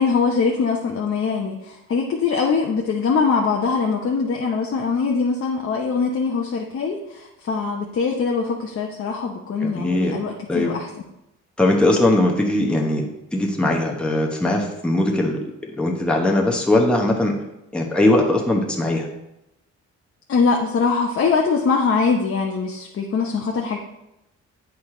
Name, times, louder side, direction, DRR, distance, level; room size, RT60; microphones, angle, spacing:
voice 1, 0.0-10.9 20.3-23.8, left 5 dB, 45° left, 0 dB, 0.8 m, -22 dB
voice 2, 9.6-10.2 10.5-10.7 11.6-15.4 15.7-17.3 17.7-19.1, left 1 dB, 5° left, -1 dB, 1.0 m, -20 dB
8.1 x 4.7 x 3.8 m, 0.90 s
cardioid pair, 90°, 30 cm